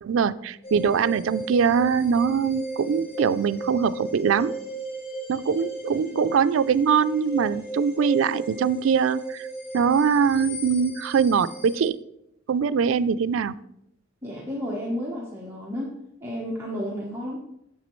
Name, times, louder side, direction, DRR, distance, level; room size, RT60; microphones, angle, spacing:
voice 1, 0.0-4.6 5.3-9.5 9.7-12.0 12.5-13.6, right 6 dB, 80° right, 16 dB, 0.4 m, -22 dB
sound 1, 0.6-11.9, right 2 dB, 45° left, 1.3 m, -36 dB
voice 2, 14.2-16.0 16.2-17.4, equal, 15° right, -4 dB, 1.0 m, -32 dB
9.1 x 6.8 x 3.1 m, 0.79 s
head